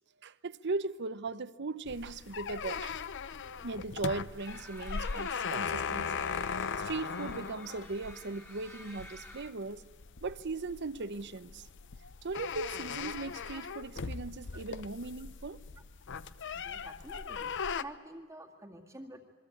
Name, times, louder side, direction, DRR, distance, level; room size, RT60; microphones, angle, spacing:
voice 1, 0.2-3.0 3.6-6.1 6.8-9.8 10.2-11.7 12.2-15.6, right 3 dB, 55° right, 0.8 m, -38 dB
sound 1, 1.8-17.8, left 6 dB, 60° left, 0.7 m, -39 dB
sound 2, 4.4-9.5, left 1 dB, 10° left, 2.5 m, -51 dB
voice 2, 16.5-19.2, right 1 dB, 15° right, 2.0 m, -49 dB
27.5 x 22.5 x 8.5 m
head